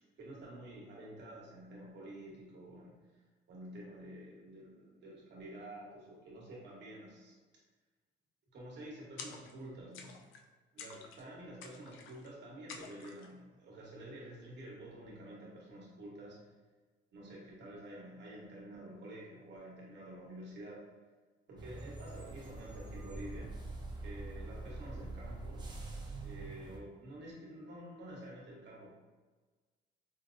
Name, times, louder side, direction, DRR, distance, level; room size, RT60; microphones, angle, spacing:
voice 1, 0.2-3.0 3.5-7.4 8.5-10.2 10.7-16.4 17.1-20.9 21.5-23.6 24.0-25.7 26.2-28.9, right 1 dB, 65° right, -4 dB, 1.1 m, -49 dB
sound 1, 9.2-9.7 9.9-10.4 10.8-11.3 11.6-12.3 12.7-13.3, left 5 dB, 85° left, 0.4 m, -50 dB
sound 2, 21.6-26.8, right 2 dB, 20° right, 0.6 m, -44 dB
4.5 x 2.0 x 2.5 m, 1.3 s
cardioid pair, 90°, 20 cm